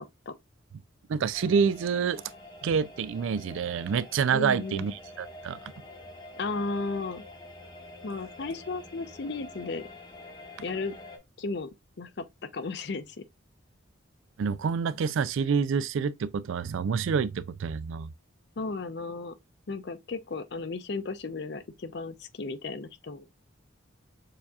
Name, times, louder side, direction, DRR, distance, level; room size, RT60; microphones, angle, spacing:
voice 1, 1.1-2.2 2.6-5.6 14.4-18.1, right 6 dB, 70° right, 0.3 m, -27 dB
sound 1, 1.3-11.2, left 2 dB, 20° left, 0.9 m, -47 dB
voice 2, 4.3-4.9 6.4-7.2 8.0-9.9 10.6-10.9 11.4-11.7 12.0-12.3 12.5-13.2 18.6-19.4 19.7-23.3, left 3 dB, 55° left, 0.5 m, -34 dB
6.6 x 2.8 x 2.3 m
head